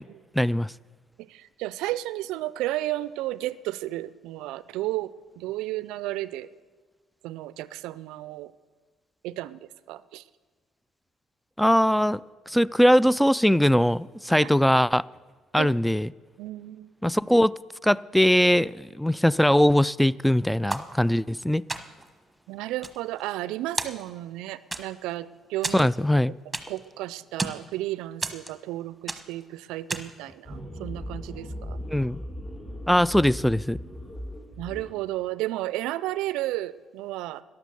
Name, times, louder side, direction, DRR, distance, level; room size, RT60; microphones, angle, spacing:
voice 1, 0.4-0.7 11.6-12.2 12.5-15.1 15.5-16.1 17.0-17.5 17.8-21.6 25.7-26.3 31.9-32.2 32.9-33.8, equal, 5° left, 22 dB, 0.3 m, -21 dB
voice 2, 1.2-6.5 7.2-8.5 9.2-9.6 9.9-10.2 14.4-14.5 15.6-15.8 16.4-16.9 22.5-25.9 26.7-31.8 34.6-37.4, right 16 dB, 80° right, 17 dB, 0.4 m, -33 dB
sound 1, 20.7-21.4 21.7-22.2 22.6-23.5 23.8-24.3 24.7-25.2 25.6-26.9 27.2-27.7 28.2-28.8 29.1-29.4 29.9-30.3, right 2 dB, 15° right, 1.2 m, -33 dB
sound 2, 30.4-34.9, equal, 35° left, 3.8 m, -38 dB
13.0 x 11.0 x 6.8 m, 1.4 s
hypercardioid pair, 60°, 0 cm